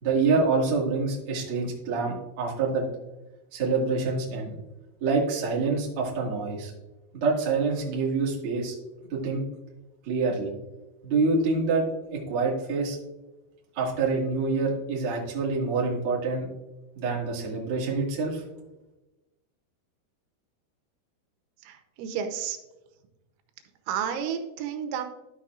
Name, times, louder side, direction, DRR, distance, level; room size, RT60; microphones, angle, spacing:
voice 1, 0.0-2.9 3.5-4.6 5.0-6.7 7.1-8.7 9.1-9.4 10.0-10.5 11.0-13.0 13.7-16.5 16.9-18.4, right 4 dB, 55° right, -4 dB, 1.5 m, -26 dB
voice 2, 21.6-22.6 23.9-25.0, right 8 dB, 80° right, 7 dB, 3.1 m, -31 dB
13.0 x 6.3 x 2.4 m, 1.0 s
omnidirectional pair, 5.5 m